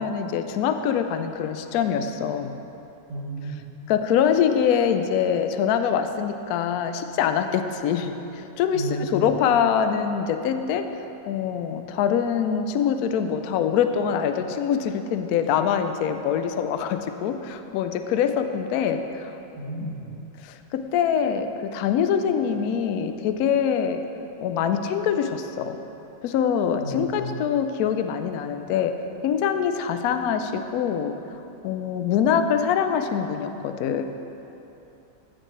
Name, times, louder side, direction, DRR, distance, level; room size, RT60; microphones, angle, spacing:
voice 1, 0.0-2.5 3.9-10.9 11.3-19.3 19.8-19.9 20.4-24.0 24.4-25.8 26.2-29.0 29.2-31.2 31.6-34.0, left 8 dB, 70° left, 8 dB, 0.9 m, -24 dB
voice 2, 3.1-3.6 8.7-9.2 19.5-20.1 26.8-27.4, equal, 65° right, -6 dB, 2.5 m, -32 dB
15.0 x 6.5 x 3.1 m, 3.0 s
omnidirectional pair, 1.9 m